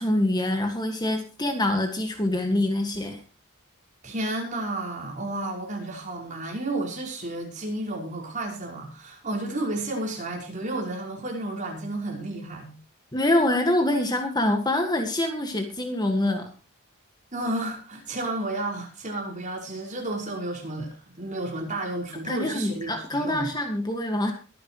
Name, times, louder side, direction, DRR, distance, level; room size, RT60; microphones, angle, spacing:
voice 1, 0.0-3.2 13.1-16.5 22.3-24.3, left 1 dB, 20° left, 5 dB, 1.7 m, -25 dB
voice 2, 4.0-12.8 17.3-22.9 23.2-23.5, right 2 dB, 35° right, -1 dB, 5.5 m, -32 dB
23.0 x 10.0 x 3.1 m, 0.34 s
head